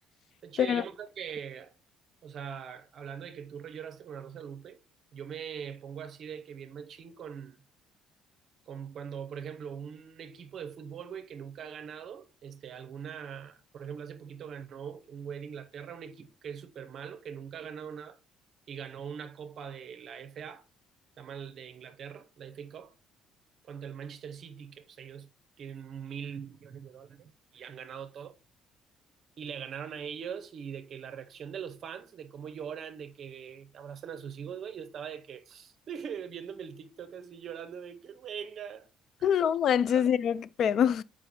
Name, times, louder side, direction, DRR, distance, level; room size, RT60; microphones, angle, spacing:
voice 1, 0.4-1.7 2.2-4.8 5.1-7.6 8.7-18.2 18.7-20.6 21.2-22.9 23.7-25.3 25.6-28.4 29.4-38.9 39.2-39.4 39.9-40.0, right 7 dB, 45° right, 0.7 m, -42 dB
voice 2, 39.2-41.0, left 8 dB, 50° left, 0.3 m, -25 dB
7.5 x 5.0 x 2.7 m
cardioid pair, 145°, 0 cm